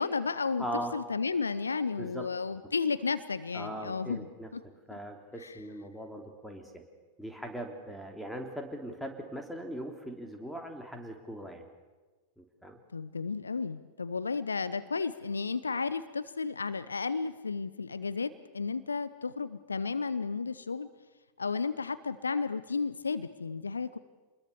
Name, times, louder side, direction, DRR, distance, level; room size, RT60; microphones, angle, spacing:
voice 1, 0.0-0.7 0.9-4.3 4.5-4.6 5.4-5.5 12.9-20.9 21.4-24.0, left 4 dB, 75° left, 15 dB, 0.8 m, -33 dB
voice 2, 0.6-1.0 2.0-2.3 3.5-4.5 4.9-6.8 7.2-11.6 12.4-12.8, equal, ahead, 3 dB, 3.3 m, -40 dB
27.5 x 21.0 x 7.0 m, 1.3 s
figure-of-eight pair, 90°, 0 cm